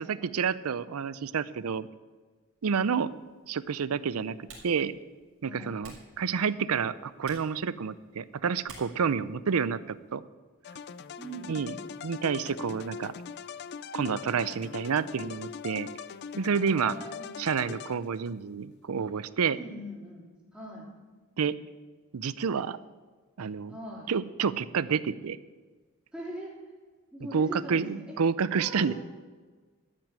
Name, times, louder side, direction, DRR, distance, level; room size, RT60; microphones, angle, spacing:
voice 1, 0.0-1.9 2.6-3.1 3.5-4.9 5.4-10.2 11.5-11.7 12.0-13.1 13.9-15.9 16.4-16.9 17.4-19.6 21.4-21.5 22.1-22.8 23.4-23.7 24.1-25.4 27.3-28.9, right 6 dB, 85° right, 17 dB, 0.5 m, -29 dB
Typing, 2.6-10.1, right 3 dB, 65° right, 4.1 m, -55 dB
voice 2, 5.4-5.7 11.2-11.8 16.6-17.3 19.5-20.3 20.5-20.9 23.7-24.1 26.1-26.5 27.1-28.2 28.6-28.9, equal, 5° right, -4 dB, 3.2 m, -41 dB
sound 1, 10.6-18.4, left 6 dB, 50° left, 0.4 m, -41 dB
13.0 x 6.2 x 8.8 m, 1.4 s
head